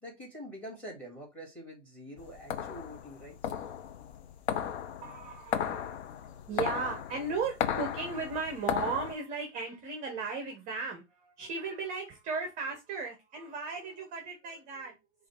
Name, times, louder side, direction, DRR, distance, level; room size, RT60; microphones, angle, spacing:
voice 1, 0.0-3.5, equal, 5° left, 2.2 m, -46 dB
sound 1, 2.2-9.1, left 9 dB, 60° left, 0.7 m, -35 dB
voice 2, 5.0-6.0 6.5-15.0, right 4 dB, 20° right, 0.7 m, -36 dB
4.8 x 2.5 x 4.1 m
hypercardioid pair, 135°, 36 cm